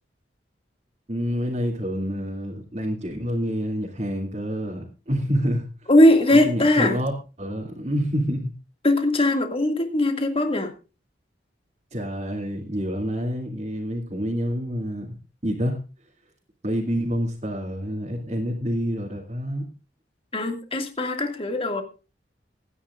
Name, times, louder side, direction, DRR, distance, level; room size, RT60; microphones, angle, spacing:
voice 1, 1.1-5.9 6.3-7.1 7.4-8.5 11.9-15.2 15.4-15.8 16.6-19.6, equal, 40° right, -3 dB, 2.7 m, -27 dB
voice 2, 5.9-7.0 8.8-10.7 20.3-21.8, left 1 dB, 30° left, 5 dB, 2.2 m, -20 dB
25.0 x 9.9 x 2.5 m, 0.32 s
head